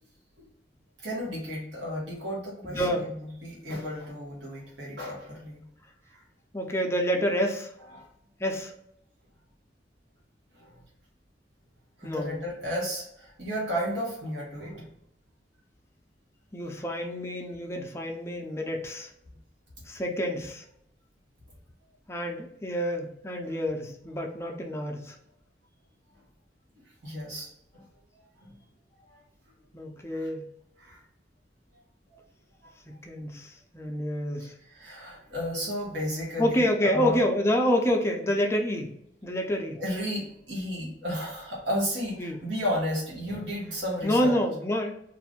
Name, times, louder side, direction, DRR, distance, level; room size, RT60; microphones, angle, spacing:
voice 1, 1.0-5.6 6.1-6.2 7.1-7.2 7.9-8.1 10.5-10.8 12.0-14.9 27.0-27.5 27.7-27.8 28.1-28.6 29.1-29.2 29.9-30.3 30.8-31.0 32.1-32.2 32.6-32.7 34.4-37.2 39.8-44.4, equal, 85° right, -4 dB, 1.2 m, -33 dB
voice 2, 2.6-3.1 6.5-7.7 8.4-8.7 12.0-12.3 16.5-19.1 19.9-20.6 22.1-25.2 29.7-30.5 32.9-34.5 36.4-38.9 39.2-39.8 42.2-42.4 44.0-44.9, equal, 15° left, 2 dB, 0.4 m, -28 dB
2.6 x 2.4 x 3.5 m, 0.75 s
head